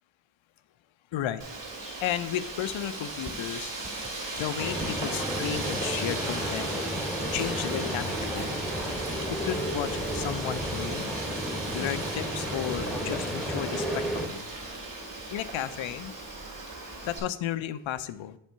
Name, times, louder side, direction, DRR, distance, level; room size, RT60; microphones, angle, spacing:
voice 1, 1.1-1.5 2.0-3.7 4.4-6.7 7.3-8.6 9.3-11.1 11.7-14.5 15.3-16.1 17.0-18.4, left 11 dB, 70° left, 13 dB, 0.6 m, -33 dB
Wind, 1.4-17.2, right 2 dB, 40° right, 2.4 m, -37 dB
sound 1, 4.6-14.3, equal, ahead, 0.9 m, -33 dB
7.4 x 3.5 x 5.5 m, 0.81 s
cardioid pair, 80°, 49 cm